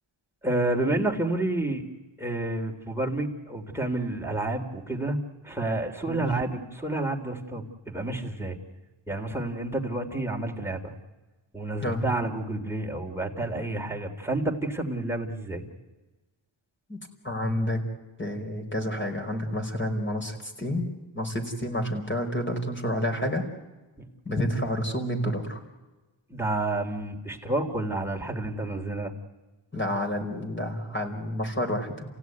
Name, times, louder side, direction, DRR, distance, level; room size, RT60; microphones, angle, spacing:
voice 1, 0.4-1.8 2.2-5.2 5.4-8.6 9.1-10.9 11.5-15.6 26.3-29.1, right 2 dB, 5° right, 1 dB, 3.4 m, -29 dB
voice 2, 16.9-17.8 18.2-20.9 21.1-23.4 24.2-25.6 29.7-32.0, left 1 dB, 25° left, 3 dB, 5.1 m, -29 dB
29.5 x 16.5 x 9.5 m, 1.2 s
wide cardioid pair, 75°, 48 cm